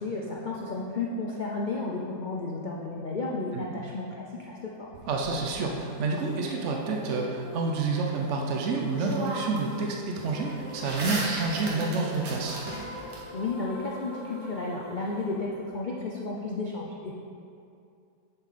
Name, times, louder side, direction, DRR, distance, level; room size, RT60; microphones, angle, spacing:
voice 1, 0.0-4.9 13.3-17.2, left 3 dB, 65° left, -2 dB, 0.4 m, -33 dB
sound 1, 4.9-6.2 8.4-8.5 8.9-9.8 10.1-13.2, right 2 dB, 80° right, 2.0 m, -36 dB
voice 2, 5.1-12.6, right 3 dB, 60° right, 0 dB, 0.9 m, -29 dB
sound 2, 5.5-16.5, left 1 dB, 25° left, 1.0 m, -45 dB
7.9 x 7.1 x 4.2 m, 2.5 s
omnidirectional pair, 1.8 m